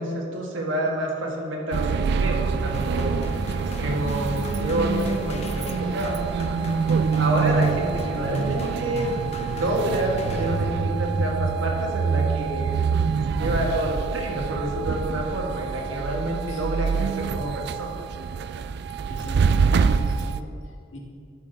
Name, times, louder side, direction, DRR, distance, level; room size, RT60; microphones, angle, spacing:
voice 1, 0.0-3.2 3.8-6.2 7.2-9.2 9.5-12.7 13.3-18.0, right 1 dB, 85° right, -1 dB, 1.8 m, -28 dB
sound 1, 1.7-20.4, right 5 dB, 60° right, 0.3 m, -25 dB
sound 2, 2.7-11.1, left 2 dB, 35° left, 0.6 m, -39 dB
voice 2, 19.1-20.5 20.9-21.0, equal, 80° left, -2 dB, 1.8 m, -39 dB
12.0 x 5.9 x 4.0 m, 2.5 s
head